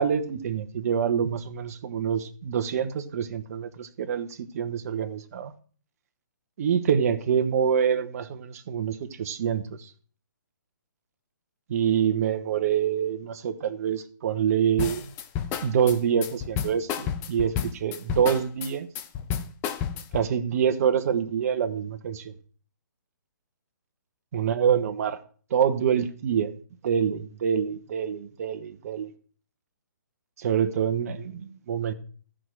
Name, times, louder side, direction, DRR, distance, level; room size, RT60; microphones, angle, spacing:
voice 1, 0.0-5.5 6.6-9.9 11.7-15.1 15.6-18.9 20.1-22.3 24.3-25.2 25.5-26.5 26.8-29.1 30.4-31.9, right 8 dB, 50° right, 1.2 m, -26 dB
sound 1, 14.8-20.3, left 8 dB, 20° left, 0.8 m, -31 dB
14.0 x 5.1 x 6.3 m
hypercardioid pair, 140°, 11 cm